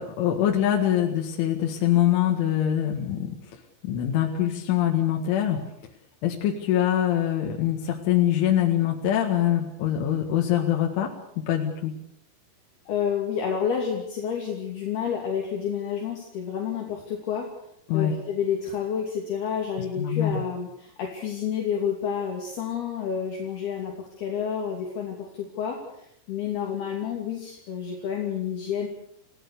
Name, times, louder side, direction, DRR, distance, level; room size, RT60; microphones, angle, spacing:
voice 1, 0.0-3.4 3.8-5.6 6.2-11.1 11.5-11.9 17.9-18.2 20.0-20.4, left 11 dB, 85° left, 1 dB, 4.3 m, -24 dB
voice 2, 12.9-17.5 17.9-28.9, left 7 dB, 60° left, 0 dB, 4.5 m, -29 dB
29.5 x 17.5 x 6.8 m, 0.74 s
omnidirectional pair, 5.4 m